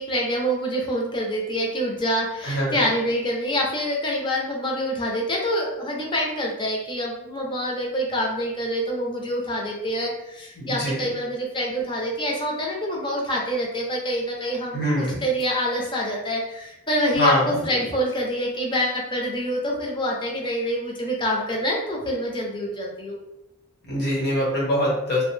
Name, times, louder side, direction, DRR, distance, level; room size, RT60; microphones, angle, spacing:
voice 1, 0.0-23.2, equal, 25° left, -1 dB, 0.5 m, -26 dB
voice 2, 2.4-2.7 10.6-11.1 14.7-15.2 17.2-17.6 23.9-25.2, equal, 50° left, -5 dB, 1.0 m, -23 dB
2.4 x 2.1 x 3.1 m, 0.88 s
head